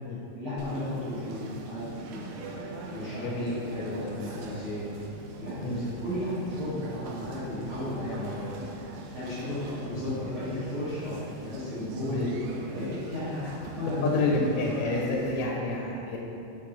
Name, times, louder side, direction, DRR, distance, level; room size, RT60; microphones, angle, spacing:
voice 1, 0.3-2.6 2.9-4.9 5.3-8.5 9.1-12.2 12.7-14.4, left 1 dB, 60° right, -11 dB, 1.4 m, -34 dB
Conversation, 0.6-15.4, right 2 dB, 80° right, 2.6 m, -42 dB
voice 2, 3.2-4.1 5.6-6.0 12.0-12.3 14.0-16.2, left 2 dB, 85° left, -1 dB, 3.1 m, -29 dB
9.0 x 3.9 x 6.4 m, 2.9 s
omnidirectional pair, 5.7 m